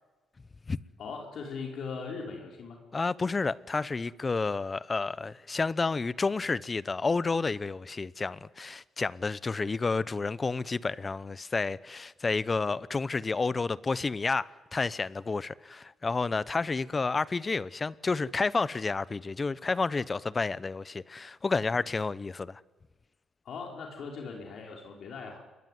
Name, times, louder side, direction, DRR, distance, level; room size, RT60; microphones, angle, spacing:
voice 1, 1.0-2.8 23.5-25.4, left 5 dB, 65° left, 5.4 m, -39 dB
voice 2, 2.9-22.6, left 4 dB, 30° left, 0.9 m, -30 dB
28.0 x 22.0 x 9.6 m
cardioid pair, 90°, 0 cm